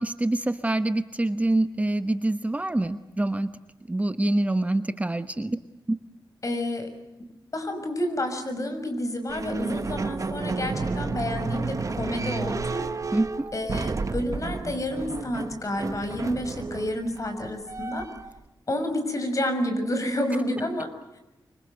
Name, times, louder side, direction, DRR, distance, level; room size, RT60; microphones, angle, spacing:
voice 1, 0.0-3.6 3.9-5.6 13.1-13.5, right 2 dB, 20° right, 10 dB, 1.0 m, -26 dB
voice 2, 6.4-6.9 7.5-12.9 13.5-18.1 18.7-20.9, left 1 dB, 45° left, 7 dB, 6.2 m, -29 dB
sound 1, 9.3-18.4, right 4 dB, 45° right, 1.2 m, -32 dB
25.5 x 25.0 x 7.9 m, 0.98 s
wide cardioid pair, 105°, 8 cm